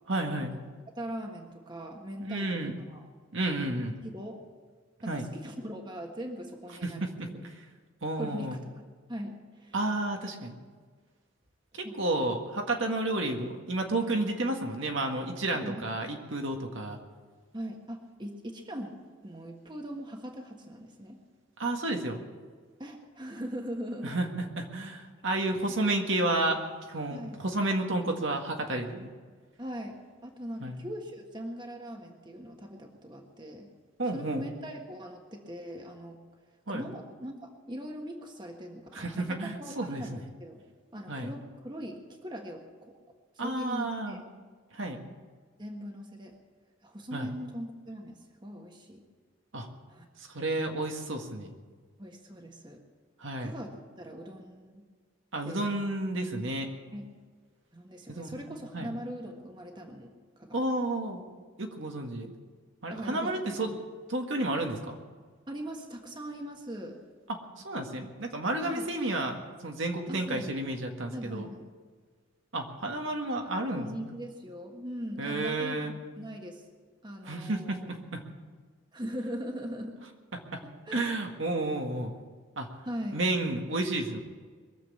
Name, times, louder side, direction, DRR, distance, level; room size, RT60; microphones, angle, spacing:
voice 1, 0.1-0.5 2.2-2.7 3.3-4.0 5.1-5.3 6.8-7.6 8.0-8.6 9.7-10.6 11.7-17.0 21.6-22.2 24.0-26.6 26.9-29.1 30.6-30.8 34.0-34.5 36.7-36.9 38.9-40.0 41.1-41.3 43.4-44.2 44.7-45.0 47.1-47.3 49.5-49.7 50.2-51.6 53.2-53.6 55.3-56.7 58.1-58.9 60.5-61.2 61.6-62.3 62.8-63.7 64.1-65.0 67.3-67.4 67.6-71.5 72.5-74.2 75.2-75.9 77.2-78.2 80.3-80.6 80.9-82.1 82.6-82.7 83.1-84.2, right 2 dB, 65° right, 3 dB, 1.7 m, -31 dB
voice 2, 1.0-3.1 4.0-4.4 5.0-7.4 8.2-8.6 9.1-9.7 11.8-12.0 15.6-16.2 17.5-18.9 19.2-21.2 22.8-24.2 27.1-27.4 29.6-33.7 34.1-36.2 36.7-40.6 40.9-42.9 43.3-44.2 45.6-46.3 46.8-49.0 49.9-50.1 52.0-52.8 53.4-54.8 55.4-55.7 56.9-57.1 57.7-60.6 62.9-63.8 65.5-67.0 68.6-68.9 70.1-70.4 71.1-71.7 73.2-76.6 77.0-77.9 78.9-80.0 80.8-81.0 82.8-83.2, equal, 20° right, 2 dB, 1.5 m, -40 dB
22.0 x 7.5 x 8.5 m, 1.5 s
head